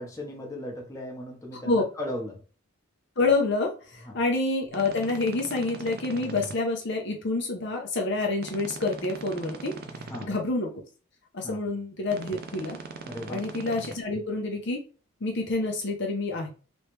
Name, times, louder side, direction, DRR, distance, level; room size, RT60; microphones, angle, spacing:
voice 1, 0.0-2.4 4.0-4.2 10.1-10.4 11.4-11.6 13.0-13.4, left 1 dB, 15° left, -2 dB, 0.9 m, -37 dB
voice 2, 3.2-9.8 10.2-10.7 11.3-12.8 13.3-14.8 15.2-16.5, left 3 dB, 55° left, 1 dB, 0.7 m, -27 dB
sound 1, 4.7-6.5 8.4-10.2 12.1-13.9, right 3 dB, 45° right, 0.5 m, -40 dB
3.2 x 3.1 x 3.1 m, 0.36 s
head